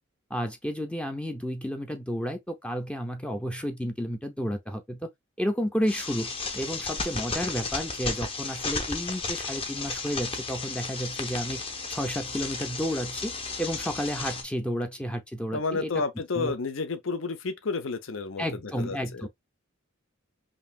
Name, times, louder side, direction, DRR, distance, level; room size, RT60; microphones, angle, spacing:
voice 1, 0.3-5.1 5.4-11.6 11.9-13.3 13.6-16.0 16.3-16.5 18.4-19.3, equal, 5° left, 0.5 m, -31 dB
sound 1, 5.9-14.4, left 3 dB, 25° left, 0.8 m, -34 dB
voice 2, 15.5-19.3, left 4 dB, 65° left, 0.7 m, -31 dB
5.3 x 2.7 x 2.3 m
head